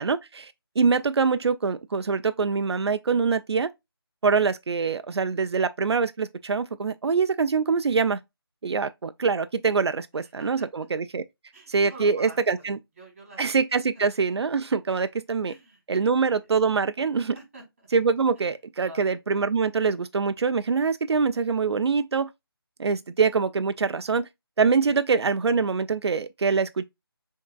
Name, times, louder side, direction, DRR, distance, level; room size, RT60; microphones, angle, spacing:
voice 1, 0.0-3.7 4.2-8.2 8.6-11.2 11.7-12.8 13.4-15.5 15.9-17.4 17.9-22.3 22.8-24.3 24.6-26.9, right 5 dB, 90° right, 0.4 m, -24 dB
voice 2, 10.1-10.9 11.5-13.4 15.4-16.5 17.3-17.9 18.4-18.5 18.8-19.2, right 1 dB, 30° right, 2.0 m, -48 dB
5.3 x 3.6 x 2.3 m
figure-of-eight pair, 170°, 13 cm